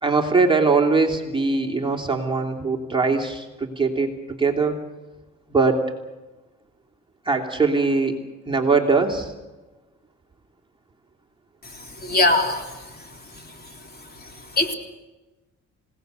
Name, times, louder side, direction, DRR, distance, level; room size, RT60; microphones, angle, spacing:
voice 1, 0.0-4.8 5.5-5.8 7.3-8.1 8.5-9.3, right 4 dB, 15° right, 1 dB, 2.9 m, -21 dB
voice 2, 11.7-12.9 14.2-14.3 14.5-14.7, left 2 dB, 30° left, 3 dB, 3.7 m, -22 dB
29.5 x 17.5 x 6.8 m, 1.2 s
cardioid pair, 90°, 30 cm